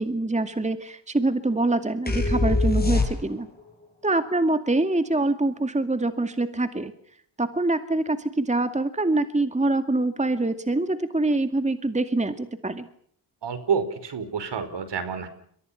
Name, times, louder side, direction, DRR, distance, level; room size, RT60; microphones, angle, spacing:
voice 1, 0.0-3.5 4.0-6.9 7.4-12.9, right 2 dB, 15° right, 9 dB, 2.2 m, -25 dB
sound 1, 2.1-3.6, left 2 dB, 20° left, 7.1 m, -23 dB
voice 2, 13.4-15.3, right 6 dB, 55° right, 11 dB, 5.0 m, -28 dB
29.0 x 24.0 x 5.9 m, 0.65 s
hypercardioid pair, 45°, 50 cm